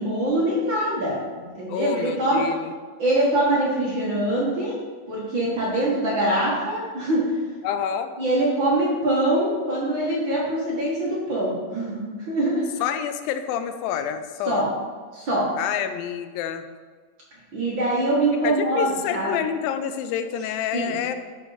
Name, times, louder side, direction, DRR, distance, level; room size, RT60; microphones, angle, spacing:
voice 1, 0.0-2.4 3.0-4.8 5.1-7.3 8.2-12.6 14.5-14.7 15.1-15.5 17.5-19.3 20.7-21.0, right 1 dB, 45° right, -6 dB, 1.8 m, -23 dB
voice 2, 1.7-2.7 7.6-8.1 12.8-14.7 15.6-16.7 18.4-21.1, left 9 dB, 90° left, 9 dB, 2.4 m, -28 dB
11.5 x 5.0 x 4.1 m, 1.5 s
omnidirectional pair, 3.9 m